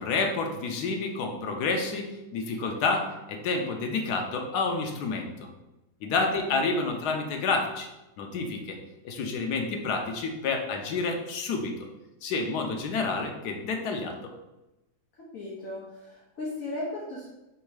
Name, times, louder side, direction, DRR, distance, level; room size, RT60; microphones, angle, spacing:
voice 1, 0.0-5.5 6.0-7.9 8.2-8.8 9.0-11.7 12.2-14.3, left 4 dB, 90° left, 3 dB, 1.2 m, -29 dB
voice 2, 15.2-17.3, left 2 dB, 60° left, -6 dB, 1.3 m, -37 dB
3.5 x 3.1 x 4.8 m, 0.98 s
omnidirectional pair, 1.7 m